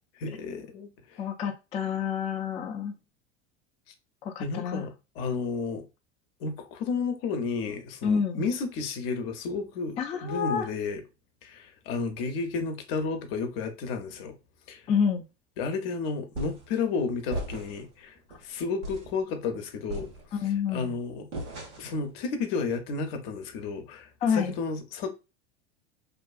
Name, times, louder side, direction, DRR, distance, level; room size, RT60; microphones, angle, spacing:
voice 1, 0.2-1.2 4.4-5.9 6.4-11.0 11.4-14.3 14.7-14.8 15.6-20.1 20.4-21.3 21.8-25.1, left 4 dB, 60° left, 0.7 m, -32 dB
voice 2, 1.2-2.9 4.2-4.9 8.0-8.4 10.0-10.7 14.9-15.2 20.3-20.9 24.2-24.5, left 7 dB, 20° left, 0.3 m, -28 dB
sound 1, 16.3-16.7 17.3-17.9 18.3-18.4 18.8-19.2 19.9-20.6 21.3-22.0, right 1 dB, 90° right, 1.0 m, -37 dB
2.6 x 2.3 x 2.3 m
hypercardioid pair, 85°, 34 cm